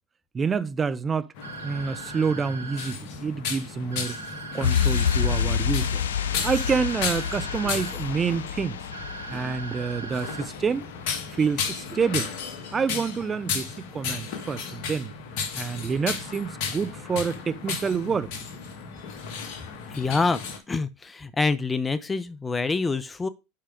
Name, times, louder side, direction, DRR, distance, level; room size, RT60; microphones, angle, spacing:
voice 1, 0.3-1.3 1.6-4.1 4.5-6.0 6.4-8.8 9.3-10.8 11.3-12.3 12.7-15.1 15.5-18.5, right 5 dB, 25° right, 0.6 m, -27 dB
sound 1, 1.4-20.6, left 6 dB, 60° left, 1.5 m, -35 dB
sound 2, 1.4-2.9 3.9-5.4 6.4-7.9 8.9-10.4, right 4 dB, 85° right, 1.5 m, -40 dB
sound 3, 4.6-11.1 11.4-11.5, left 8 dB, 80° left, 0.6 m, -28 dB
voice 2, 19.9-20.4 20.7-23.3, left 4 dB, 15° left, 0.7 m, -26 dB
5.7 x 4.9 x 4.9 m
hypercardioid pair, 90°, 0 cm